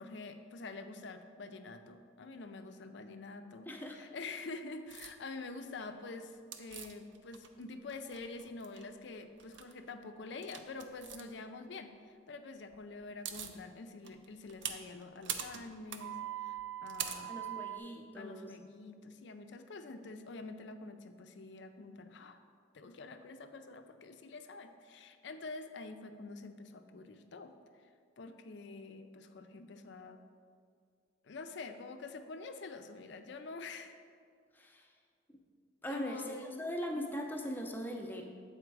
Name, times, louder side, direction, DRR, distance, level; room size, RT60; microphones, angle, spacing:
voice 1, 0.0-3.7 3.9-17.3 18.2-22.4 22.7-27.5 28.2-30.2 31.2-34.0 35.9-36.6, left 3 dB, 60° left, 8 dB, 0.5 m, -47 dB
voice 2, 3.7-4.0 17.3-18.5 34.5-34.9 35.3-35.4 35.8-38.2, equal, 10° left, 2 dB, 0.5 m, -40 dB
sound 1, 4.9-5.1 6.5-7.6 7.9-8.8 9.4-9.7 10.4-11.2 12.7-12.8 13.0-13.6 14.0-17.8, right 9 dB, 65° right, 0.5 m, -42 dB
7.7 x 4.3 x 4.6 m, 2.1 s
head